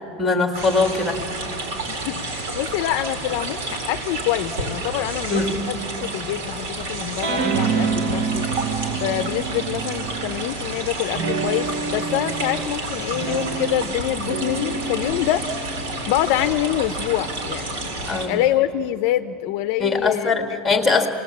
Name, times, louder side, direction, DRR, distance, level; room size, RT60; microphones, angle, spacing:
voice 1, 0.2-1.2 5.3-5.6 18.1-18.3 19.8-21.1, left 4 dB, 5° left, 3 dB, 1.7 m, -21 dB
sound 1, 0.5-18.3, right 2 dB, 75° right, 4.4 m, -30 dB
voice 2, 1.9-8.4 8.9-15.5 16.1-20.3, left 13 dB, 50° left, 10 dB, 0.6 m, -26 dB
sound 2, 7.2-10.6 11.1-17.9, right 5 dB, 40° right, 1.0 m, -28 dB
27.0 x 19.5 x 8.6 m, 2.7 s
supercardioid pair, 180°, 0 cm